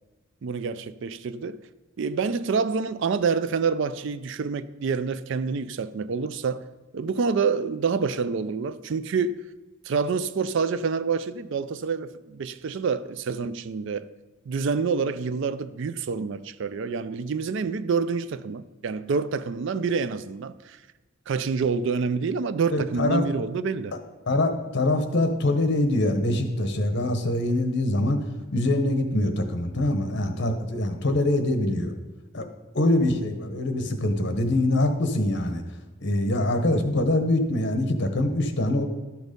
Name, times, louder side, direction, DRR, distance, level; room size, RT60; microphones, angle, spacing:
voice 1, 0.4-1.6 2.0-6.7 6.9-9.4 9.8-14.1 14.5-20.8 21.3-24.0, right 5 dB, 60° right, 0.4 m, -27 dB
voice 2, 22.7-23.2 24.3-28.2 28.5-31.9 32.3-32.4 32.7-35.6 36.0-38.9, left 1 dB, 55° left, 1.1 m, -24 dB
12.0 x 6.2 x 5.2 m
head